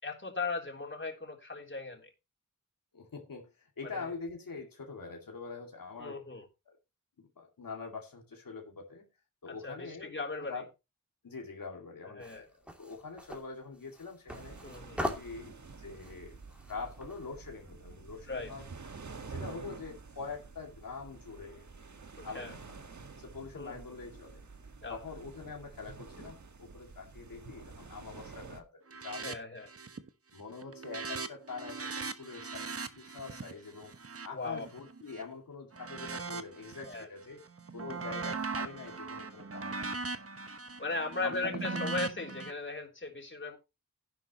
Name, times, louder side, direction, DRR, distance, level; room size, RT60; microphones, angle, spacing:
voice 1, 0.0-2.0 3.9-4.1 6.0-6.5 9.5-10.6 12.1-12.5 14.6-15.0 18.3-18.5 22.2-22.6 23.5-23.8 24.8-25.0 29.2-29.7 34.3-34.7 36.9-37.1 40.8-43.6, left 3 dB, 35° left, 3.5 m, -37 dB
voice 2, 2.9-6.2 6.7-6.8 7.2-9.1 9.4-10.1 10.4-10.7 11.2-14.6 14.9-16.4 16.7-18.7 19.3-21.7 22.2-22.8 23.2-24.4 24.9-29.5 30.3-34.0 34.2-37.4 37.7-40.3 41.2-41.9, left 4 dB, 80° left, 2.3 m, -44 dB
sound 1, 12.2-17.3, equal, 5° right, 2.7 m, -42 dB
sound 2, 14.3-28.6, right 4 dB, 60° right, 1.6 m, -49 dB
sound 3, 28.9-29.4 29.6-30.1 30.4-35.2 35.7-37.0 37.4-42.5, right 4 dB, 45° right, 1.2 m, -40 dB
11.5 x 11.0 x 3.0 m
wide cardioid pair, 105°, 33 cm